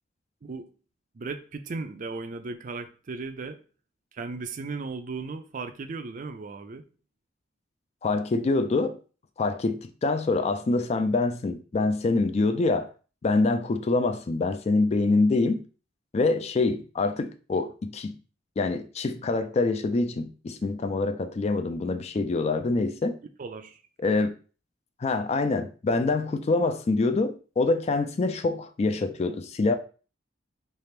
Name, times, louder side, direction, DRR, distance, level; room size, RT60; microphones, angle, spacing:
voice 1, 1.1-3.6 4.1-6.8 23.4-23.8, right 4 dB, 45° right, 0.4 m, -36 dB
voice 2, 8.0-9.0 9.4-12.9 13.2-15.6 16.1-18.2 18.6-23.2 24.0-24.3 25.0-29.7, left 3 dB, 35° left, 0.3 m, -25 dB
3.4 x 2.4 x 4.3 m
head